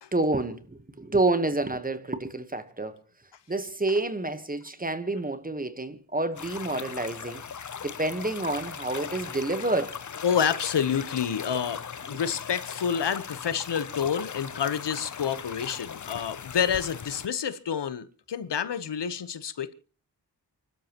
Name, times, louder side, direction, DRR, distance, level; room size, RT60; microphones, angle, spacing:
voice 1, 0.1-3.0 3.5-7.4 7.8-10.0, right 2 dB, 20° right, 1.1 m, -28 dB
sound 1, 6.4-17.3, left 7 dB, 45° left, 0.7 m, -39 dB
voice 2, 10.2-19.7, left 8 dB, 80° left, 1.1 m, -28 dB
29.0 x 12.5 x 3.0 m
wide cardioid pair, 100°, 41 cm